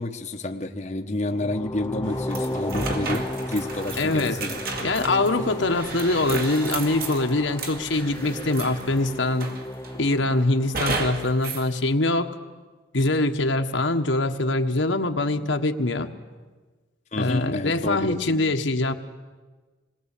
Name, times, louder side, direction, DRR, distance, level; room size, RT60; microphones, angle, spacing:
voice 1, 0.0-4.6 17.1-18.4, left 2 dB, 40° left, 4 dB, 1.0 m, -29 dB
sound 1, 1.3-11.4, left 1 dB, 15° left, 0.8 m, -35 dB
Stream, 2.0-9.2, right 1 dB, 70° right, 3.8 m, -46 dB
sound 2, 2.3-9.0 9.4-10.0 10.7-11.7, right 3 dB, 50° right, 2.3 m, -33 dB
voice 2, 4.0-4.4 4.8-9.5 10.0-12.3 12.9-16.1 17.2-18.9, left 2 dB, 80° left, 5 dB, 1.5 m, -23 dB
27.0 x 20.5 x 8.5 m, 1.3 s
head